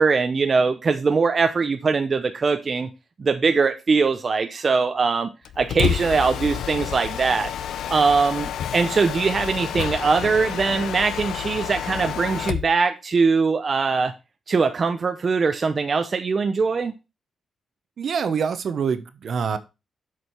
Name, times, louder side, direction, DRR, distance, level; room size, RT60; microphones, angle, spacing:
voice 1, 0.0-2.9 3.2-5.3 5.6-7.5 7.9-14.1 14.5-16.9, right 4 dB, 40° right, 0.8 m, -21 dB
Mechanisms, 5.5-12.7, left 9 dB, 90° left, 0.6 m, -29 dB
voice 2, 18.0-19.6, right 6 dB, 60° right, 1.1 m, -25 dB
8.0 x 5.1 x 5.8 m
cardioid pair, 105°, 0 cm